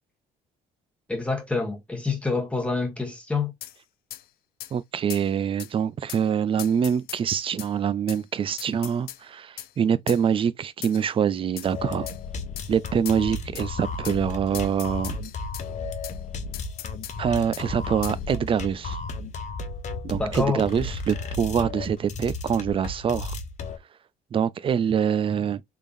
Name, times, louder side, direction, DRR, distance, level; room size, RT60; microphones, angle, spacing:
voice 1, 1.1-3.5 20.2-20.6, left 4 dB, 5° left, 1.3 m, -27 dB
sound 1, 3.6-3.8 4.1-4.2 4.6-4.7 5.1-5.3 5.6-5.7 6.1-6.2 6.6-7.7 8.1-8.2 8.6-9.2 9.6-9.7 10.1-10.2 10.8-11.1 11.6-11.7 12.1-12.2 12.6-12.7 13.1-13.2 13.6-13.7 14.0-14.2 14.5-15.7 16.0-16.2 16.5-17.2 17.5-17.7 18.0-18.2, left 13 dB, 65° left, 0.4 m, -39 dB
voice 2, 4.7-12.1 12.7-15.2 17.2-19.0 20.0-23.3 24.3-25.6, right 8 dB, 30° right, 0.4 m, -25 dB
sound 2, 11.7-23.8, left 3 dB, 45° left, 0.8 m, -34 dB
3.6 x 3.3 x 2.6 m
cardioid pair, 110°, 17 cm